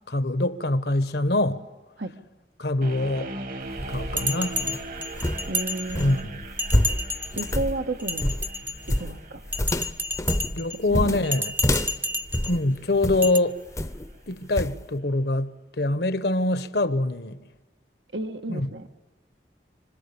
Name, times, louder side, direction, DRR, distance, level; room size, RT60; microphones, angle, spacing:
voice 1, 0.1-1.6 2.6-3.3 3.9-4.6 6.0-6.4 10.5-11.5 12.5-13.6 14.3-17.4 18.5-18.7, left 2 dB, 65° left, 1.1 m, -24 dB
sound 1, 2.8-13.9, right 2 dB, 50° right, 1.5 m, -41 dB
sound 2, 3.6-13.3 13.8-14.1 14.6-14.8, left 1 dB, 15° left, 0.7 m, -28 dB
Bell, 4.2-6.2 6.6-7.6 8.0-9.0 9.5-10.8 11.2-12.6 13.2-13.4, equal, 10° right, 0.8 m, -31 dB
voice 2, 5.5-6.2 7.3-8.3 8.9-9.4 10.9-11.2 18.1-18.9, right 2 dB, 85° right, 1.8 m, -32 dB
26.5 x 25.5 x 7.0 m
head